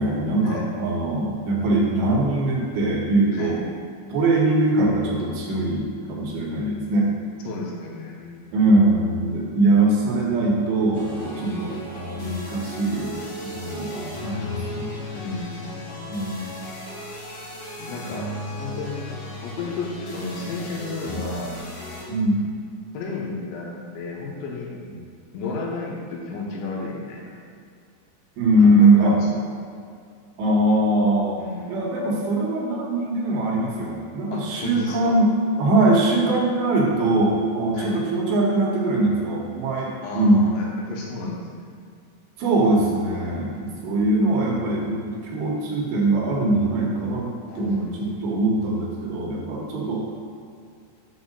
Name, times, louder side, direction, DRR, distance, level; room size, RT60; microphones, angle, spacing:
voice 1, 0.0-3.6 4.1-7.1 8.5-14.9 16.1-16.5 22.1-22.4 24.9-25.1 28.4-29.2 30.4-31.4 31.7-40.5 42.4-47.3 47.6-50.0, right 2 dB, 75° right, -2 dB, 2.9 m, -22 dB
voice 2, 7.5-8.6 11.4-11.8 15.1-15.8 17.8-18.3 18.6-19.0 19.4-21.5 22.9-24.7 25.3-27.3 28.6-29.4 31.4-32.0 34.3-35.2 36.2-36.4 37.7-38.0 40.0-41.7 42.7-43.1 43.5-43.9 47.5-48.2 49.6-49.7, left 3 dB, 80° left, -2 dB, 3.3 m, -33 dB
sound 1, 10.9-22.0, left 1 dB, 55° left, 2.0 m, -35 dB
7.3 x 4.1 x 6.4 m, 2.3 s
omnidirectional pair, 5.5 m